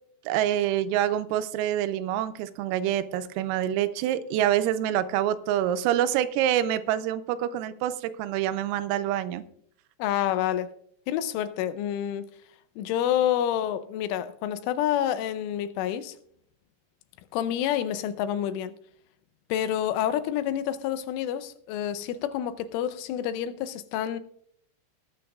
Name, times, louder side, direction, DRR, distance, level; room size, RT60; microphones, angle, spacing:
voice 1, 0.3-9.4, right 11 dB, 90° right, 3.5 m, -26 dB
voice 2, 10.0-10.7 11.1-12.3 12.8-16.1 17.3-18.7 19.5-24.2, left 10 dB, 85° left, 3.0 m, -28 dB
19.5 x 9.5 x 2.4 m
omnidirectional pair, 5.9 m